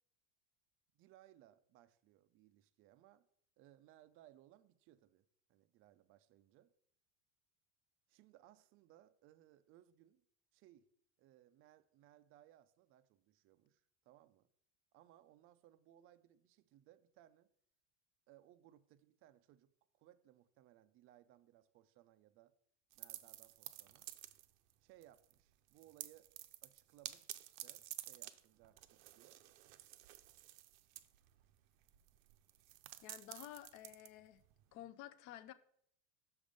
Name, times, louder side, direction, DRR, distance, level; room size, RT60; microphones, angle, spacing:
voice 1, 0.9-3.3 3.6-6.7 8.1-10.2 10.5-10.9 11.2-14.5 14.9-17.5 18.3-22.5 23.0-24.1 24.8-26.3 26.6-29.4, right 13 dB, 35° right, 0.4 m, -65 dB
sound 1, 22.9-24.7 25.0-25.4 25.7-34.7, right 15 dB, 70° right, 0.6 m, -52 dB
voice 2, 33.0-34.4 34.7-35.5, left 13 dB, 45° left, 0.5 m, -52 dB
6.3 x 5.2 x 5.0 m
supercardioid pair, 135°, 42 cm